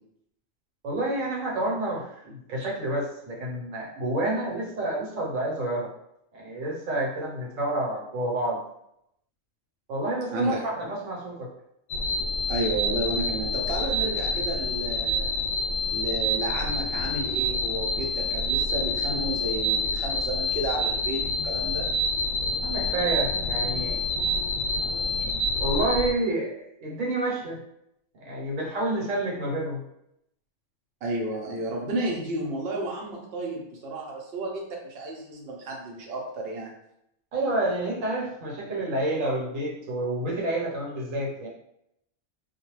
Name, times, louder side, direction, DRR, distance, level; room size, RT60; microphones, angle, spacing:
voice 1, 0.8-5.9 6.3-8.6 9.9-11.5 22.6-24.0 25.6-27.6 28.2-29.8 31.3-31.4 37.3-41.5, right 1 dB, 80° right, -3 dB, 1.2 m, -29 dB
voice 2, 10.3-10.6 12.5-15.3 15.9-21.9 31.0-36.7, right 2 dB, 60° right, -1 dB, 0.8 m, -32 dB
sound 1, 11.9-26.1, left 1 dB, 90° left, 1.0 m, -27 dB
2.4 x 2.2 x 3.0 m, 0.78 s
omnidirectional pair, 1.3 m